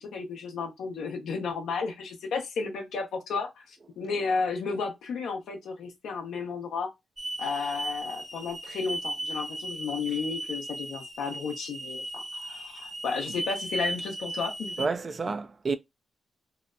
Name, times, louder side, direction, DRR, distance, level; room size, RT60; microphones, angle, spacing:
voice 1, 0.0-6.9 7.4-14.9, left 5 dB, 80° left, 0.6 m, -33 dB
Hiss / Alarm, 7.2-14.9, right 1 dB, 20° right, 0.7 m, -36 dB
voice 2, 14.8-15.8, right 4 dB, 45° right, 0.3 m, -29 dB
2.7 x 2.1 x 2.4 m
supercardioid pair, 60°, 0 cm